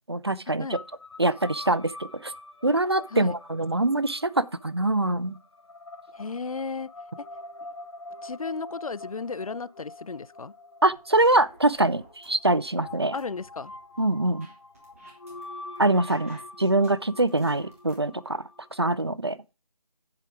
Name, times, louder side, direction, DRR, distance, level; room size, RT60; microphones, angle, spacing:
voice 1, 0.1-0.8 1.2-2.3 2.6-5.4 10.8-13.1 14.0-14.5 15.8-18.4 18.7-19.4, right 2 dB, 40° right, 0.4 m, -24 dB
sound 1, 0.7-18.8, left 2 dB, 45° left, 0.9 m, -45 dB
voice 2, 6.1-6.9 8.2-10.5 13.1-13.7, left 4 dB, 60° left, 0.4 m, -34 dB
sound 2, 10.9-12.3 12.7-15.4 15.7-18.0, right 2 dB, 20° right, 2.3 m, -54 dB
7.5 x 7.3 x 4.8 m
figure-of-eight pair, 165°, 21 cm